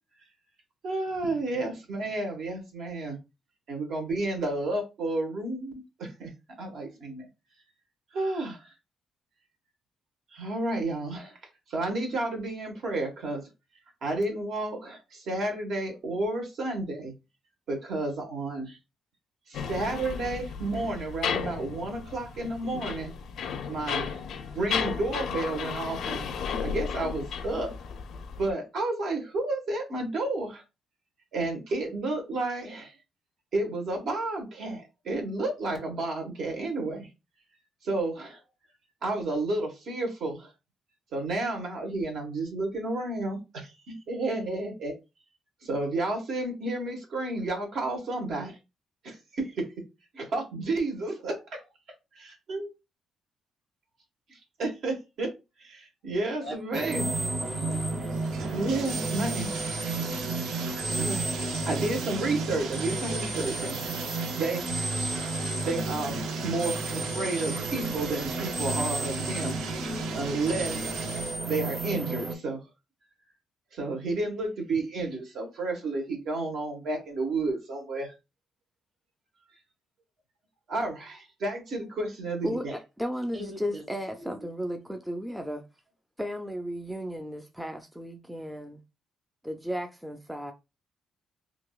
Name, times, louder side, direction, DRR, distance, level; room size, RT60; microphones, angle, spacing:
voice 1, 0.8-3.2 3.7-6.3 6.6-7.3 8.1-8.7 10.3-11.3 11.7-13.4 14.0-17.1 17.7-18.8 19.5-23.1 23.7-24.2 24.5-26.3 26.6-27.7 28.4-30.6 31.3-32.9 33.5-37.1 37.8-38.4 39.0-40.5 41.1-44.9 45.6-48.6 49.0-49.5 50.1-51.4 52.5-52.7 54.6-55.3 56.0-57.1 58.4-59.5 60.6-63.8 64.4-64.9 65.6-69.6 70.1-71.1 71.5-72.6 73.7-78.1 80.7-82.8, right 2 dB, 70° right, 1.3 m, -31 dB
sound 1, 19.5-28.5, left 6 dB, 70° left, 0.4 m, -34 dB
voice 2, 56.4-58.3 83.3-83.8 84.2-84.4, right 1 dB, 30° right, 1.6 m, -42 dB
sound 2, 56.7-72.3, right 2 dB, 45° right, 1.2 m, -32 dB
Bathtub (filling or washing), 57.3-71.4, right 6 dB, 85° right, 0.5 m, -39 dB
voice 3, 82.4-85.6 86.2-88.8 89.4-90.5, equal, 5° right, 0.4 m, -34 dB
3.7 x 2.5 x 2.3 m
cardioid pair, 90°, 0 cm